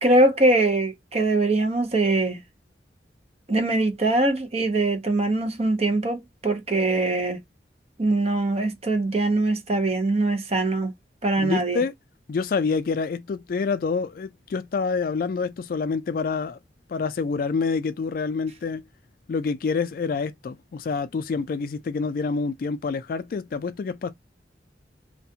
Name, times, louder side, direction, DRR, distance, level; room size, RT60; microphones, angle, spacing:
voice 1, 0.0-2.4 3.5-7.4 8.0-10.9 11.2-11.8, right 2 dB, 35° right, 0.7 m, -22 dB
voice 2, 11.4-11.9 12.3-16.6 16.9-18.8 19.3-24.1, left 4 dB, 55° left, 0.3 m, -27 dB
2.4 x 2.2 x 2.7 m
head